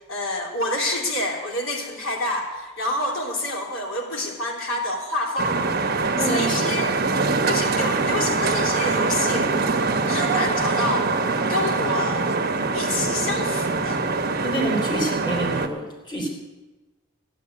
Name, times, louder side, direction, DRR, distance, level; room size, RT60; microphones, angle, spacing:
voice 1, 0.1-5.6 6.0-6.9 7.5-9.5 10.1-11.1 11.5-12.3 12.7-14.0, left 2 dB, 75° left, -1 dB, 3.1 m, -27 dB
sound 1, 5.4-15.7, right 3 dB, 45° right, 1.1 m, -23 dB
voice 2, 6.1-6.6 14.4-16.3, right 1 dB, 20° left, 0 dB, 3.4 m, -27 dB
14.5 x 9.2 x 9.5 m, 1.2 s
head